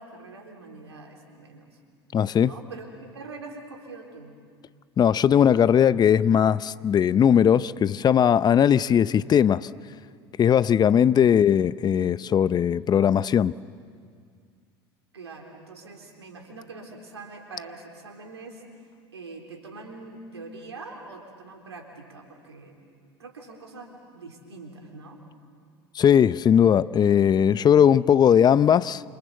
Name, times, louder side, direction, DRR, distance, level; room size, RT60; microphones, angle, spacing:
voice 1, 0.0-1.8 2.4-4.4 11.0-11.5 15.1-18.6 19.1-22.7 23.2-25.2, right 3 dB, 90° right, 3.9 m, -43 dB
voice 2, 2.1-2.5 5.0-9.7 10.4-13.5 26.0-29.0, left 8 dB, 30° left, 0.7 m, -19 dB
28.0 x 26.5 x 7.9 m
hypercardioid pair, 80°, 14 cm